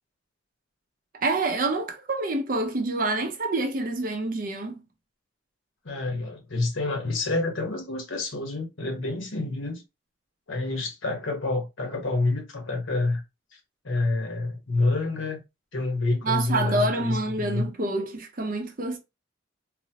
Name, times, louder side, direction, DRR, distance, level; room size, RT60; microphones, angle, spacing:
voice 1, 1.1-4.8 16.2-19.0, right 2 dB, 45° right, 0.6 m, -27 dB
voice 2, 5.8-9.8 10.5-13.2 13.5-13.6 13.8-15.4 15.7-17.7, left 2 dB, 80° left, 1.1 m, -28 dB
3.9 x 2.0 x 2.8 m
head